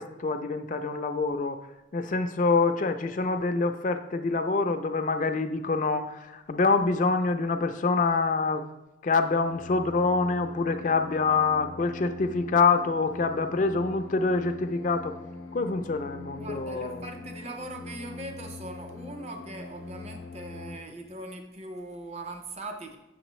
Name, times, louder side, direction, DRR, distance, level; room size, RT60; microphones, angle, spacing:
voice 1, 0.0-1.6 1.9-8.6 9.0-15.1 15.5-17.1, left 4 dB, 40° left, 7 dB, 0.4 m, -26 dB
sound 1, 9.4-20.8, left 3 dB, 85° left, 0.6 m, -43 dB
voice 2, 16.4-23.0, right 2 dB, 35° right, 5 dB, 0.6 m, -40 dB
7.7 x 6.0 x 3.1 m, 0.99 s
head